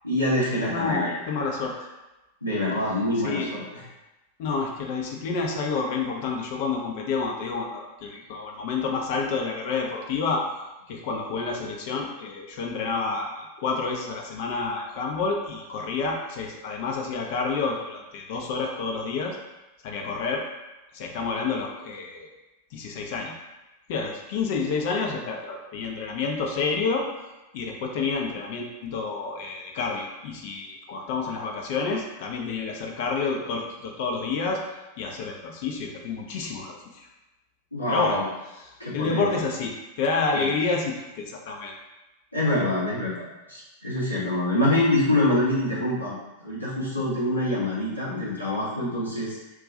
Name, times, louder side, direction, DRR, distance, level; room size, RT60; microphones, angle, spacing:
voice 1, 0.0-1.1 2.4-3.8 37.7-38.2 38.8-39.4 40.3-40.5 42.3-49.4, left 1 dB, 85° left, -8 dB, 0.9 m, -25 dB
voice 2, 0.7-1.9 3.2-3.5 4.4-10.4 10.9-13.3 13.6-19.4 19.8-20.4 20.9-22.3 22.7-23.3 23.9-27.0 27.5-34.6 35.0-37.1 37.9-38.2 38.6-41.7, left 4 dB, 50° left, 0 dB, 0.5 m, -29 dB
2.4 x 2.3 x 3.9 m, 1.0 s
figure-of-eight pair, 90°, 0 cm